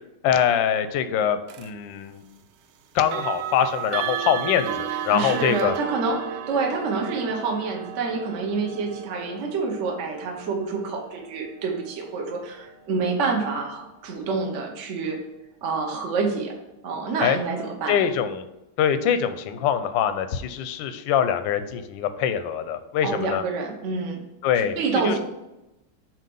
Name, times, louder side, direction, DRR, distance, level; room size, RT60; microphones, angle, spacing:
voice 1, 0.2-2.2 2.9-5.7 17.2-17.4 17.9-18.5 18.8-23.4 24.4-24.8 25.0-25.2, left 9 dB, 75° left, 10 dB, 1.1 m, -24 dB
sound 1, 1.5-1.7 3.0-13.9, right 10 dB, 85° right, 1.5 m, -35 dB
voice 2, 4.9-15.2 15.6-16.5 16.8-18.0 23.0-24.2 24.5-25.2, right 4 dB, 50° right, 1 dB, 0.9 m, -27 dB
7.5 x 2.8 x 5.3 m, 0.93 s
omnidirectional pair, 2.4 m